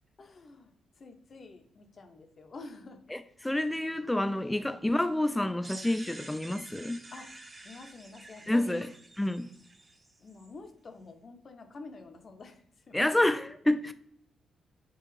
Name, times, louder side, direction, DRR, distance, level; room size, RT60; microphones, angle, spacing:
voice 1, 0.2-3.0 4.5-4.6 7.1-7.3 7.6-8.9 10.2-13.0, left 3 dB, 50° left, 0.7 m, -48 dB
voice 2, 3.1-7.0 8.5-8.9 9.2-9.5 12.9-13.9, left 1 dB, 10° left, 0.4 m, -28 dB
sound 1, 5.6-10.5, right 2 dB, 35° right, 0.9 m, -49 dB
6.8 x 2.4 x 3.2 m
supercardioid pair, 50°, 0 cm